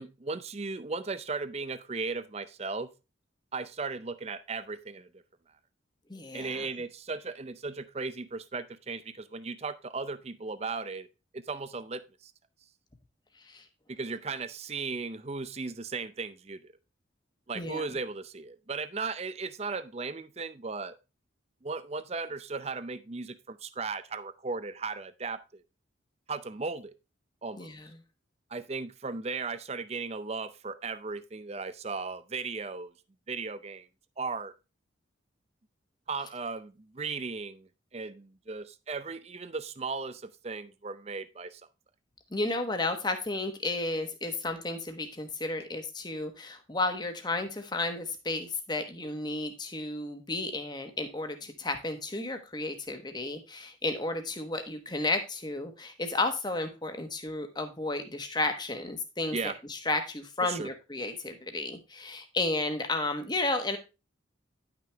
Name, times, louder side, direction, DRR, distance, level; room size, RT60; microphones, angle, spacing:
voice 1, 0.0-2.9 3.5-5.2 6.3-11.1 11.3-12.3 13.9-16.7 17.5-20.9 21.6-25.6 26.3-26.9 27.4-27.7 28.5-32.9 33.3-33.9 34.2-34.5 36.1-41.6 59.3-59.6 60.4-60.7, right 4 dB, 30° right, 14 dB, 0.5 m, -36 dB
voice 2, 6.1-6.7 13.5-13.6 17.5-17.9 27.6-27.9 42.3-63.8, left 2 dB, 20° left, 6 dB, 1.1 m, -33 dB
10.5 x 6.0 x 3.4 m, 0.29 s
head